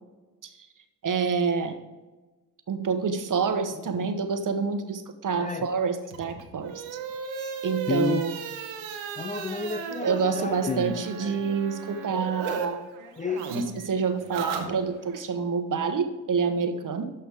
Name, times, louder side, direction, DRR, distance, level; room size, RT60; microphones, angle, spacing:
voice 1, 1.0-1.8 2.7-8.3 10.0-12.9 13.5-17.1, right 5 dB, 40° right, 8 dB, 1.2 m, -28 dB
voice 2, 5.4-5.7 7.4-7.6 7.9-8.2 9.2-11.6 13.2-13.5, left 4 dB, 15° left, 8 dB, 0.5 m, -32 dB
sound 1, 6.0-12.7 12.9-15.2, right 6 dB, 80° right, 1.1 m, -36 dB
12.5 x 5.5 x 3.5 m, 1.2 s
hypercardioid pair, 50°, 48 cm